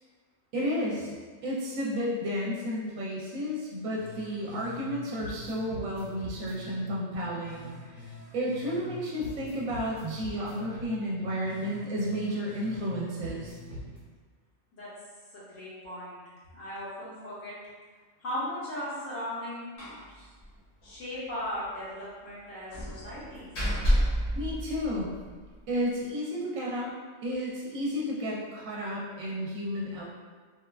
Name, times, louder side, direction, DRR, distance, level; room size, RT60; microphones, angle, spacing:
voice 1, 0.5-1.1 1.4-7.6 8.0-13.6 24.3-25.1 25.7-26.9 27.2-30.0, equal, 75° right, -4 dB, 0.9 m, -32 dB
sound 1, 4.0-4.9 5.2-8.9 9.2-12.9 13.2-14.0, left 1 dB, 40° right, 1.1 m, -44 dB
voice 2, 15.3-17.6 18.2-19.7 20.1-20.3 20.8-23.5, left 1 dB, 75° left, -10 dB, 1.2 m, -37 dB
Slam, 19.8-20.1 20.4-20.5 20.8-20.9 22.7-25.3, equal, 60° left, 1.1 m, -29 dB
3.2 x 2.2 x 2.3 m, 1.5 s
omnidirectional pair, 1.4 m